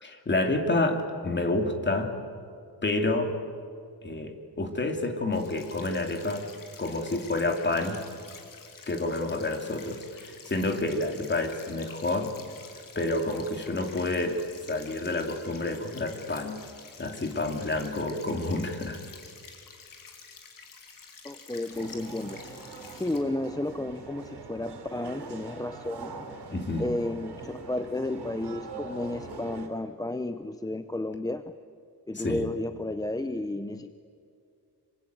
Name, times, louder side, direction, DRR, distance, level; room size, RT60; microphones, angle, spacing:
voice 1, 0.0-2.2 2.8-3.3 4.0-6.5 6.8-8.0 8.9-12.3 12.9-14.4 14.7-16.6 17.0-19.0 26.5-26.9 32.1-32.5, left 2 dB, 25° left, 5 dB, 2.7 m, -29 dB
sound 1, 5.3-23.2, left 5 dB, 55° left, 3.4 m, -49 dB
voice 2, 21.2-22.4 22.9-26.1 26.8-31.5 32.1-34.0, left 2 dB, 10° left, 9 dB, 0.6 m, -32 dB
sound 2, 21.7-29.7, right 3 dB, 85° right, 4.4 m, -43 dB
26.0 x 24.5 x 9.2 m, 2.3 s
wide cardioid pair, 175°, 40 cm